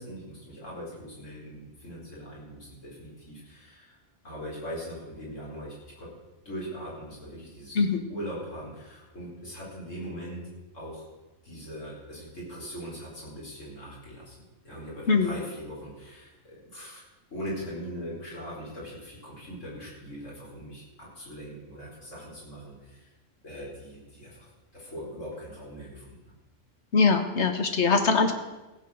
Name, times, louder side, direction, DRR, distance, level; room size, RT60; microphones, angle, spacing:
voice 1, 0.0-4.0 4.2-6.1 6.4-7.8 8.1-10.4 10.7-11.0 11.4-14.4 14.6-17.0 17.3-23.1 23.4-24.5 24.7-26.2, equal, 85° left, -5 dB, 5.0 m, -40 dB
voice 2, 26.9-28.3, left 4 dB, 65° left, 6 dB, 1.5 m, -22 dB
15.5 x 8.4 x 6.4 m, 1.1 s
omnidirectional pair, 1.2 m